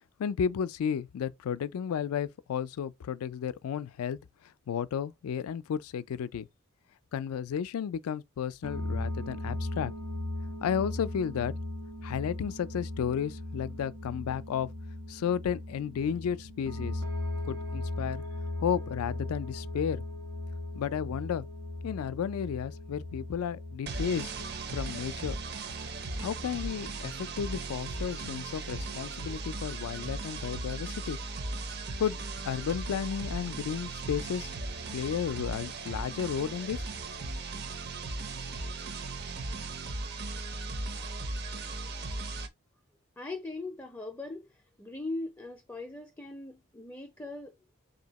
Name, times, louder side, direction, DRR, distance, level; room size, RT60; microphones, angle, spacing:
voice 1, 0.2-4.2 4.7-6.5 7.1-9.9 10.6-11.5 12.0-14.7 15.1-17.0 17.4-18.2 18.6-20.0 20.7-21.5 21.8-25.4 26.2-31.2 32.0-34.5 34.9-36.9, left 8 dB, 85° left, 0.3 m, -33 dB
sound 1, 8.6-23.8, left 1 dB, 75° right, 1.4 m, -37 dB
Synth Metal Rock Loop, 23.9-42.5, right 3 dB, 45° right, 0.5 m, -37 dB
voice 2, 43.2-47.5, left 2 dB, 10° left, 0.4 m, -40 dB
3.5 x 2.7 x 4.0 m
head